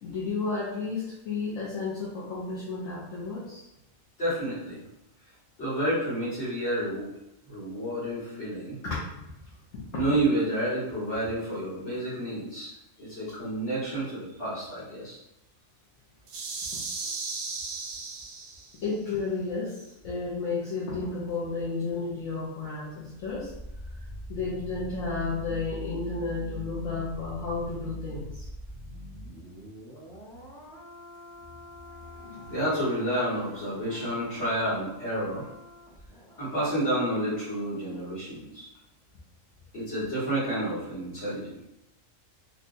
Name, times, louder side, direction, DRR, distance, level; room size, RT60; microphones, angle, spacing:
voice 1, 0.0-3.6 8.8-9.1 9.7-9.8 18.8-23.5 24.3-28.4 32.0-32.5 33.9-34.1, left 4 dB, 75° left, -7 dB, 1.1 m, -32 dB
voice 2, 4.2-4.8 5.6-7.1 7.5-8.8 9.9-12.7 13.0-15.2 17.0-17.1 32.5-35.4 36.4-38.7 39.7-41.6, right 1 dB, 60° left, -10 dB, 2.0 m, -30 dB
sound 1, 16.3-18.8, right 4 dB, 80° right, 1.0 m, -36 dB
sound 2, 23.1-38.0 38.3-38.4, equal, 5° left, 0.5 m, -44 dB
3.3 x 2.7 x 2.6 m, 0.86 s
omnidirectional pair, 1.4 m